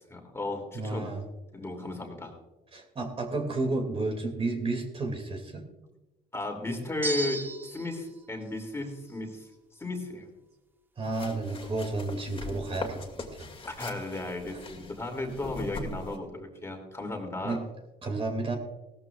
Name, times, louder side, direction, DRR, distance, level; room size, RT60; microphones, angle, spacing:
voice 1, 0.1-1.1 1.5-2.3 6.3-10.3 13.7-17.6, left 2 dB, 15° left, 2 dB, 2.7 m, -35 dB
voice 2, 0.7-1.2 2.7-5.6 11.0-13.5 17.4-17.6 18.0-18.6, right 2 dB, 35° right, 4 dB, 2.4 m, -32 dB
sound 1, 7.0-8.0, right 2 dB, 10° right, 0.9 m, -34 dB
sound 2, 11.0-16.2, left 3 dB, 30° left, 2.4 m, -41 dB
17.5 x 13.5 x 2.4 m, 1.0 s
cardioid pair, 110°, 17 cm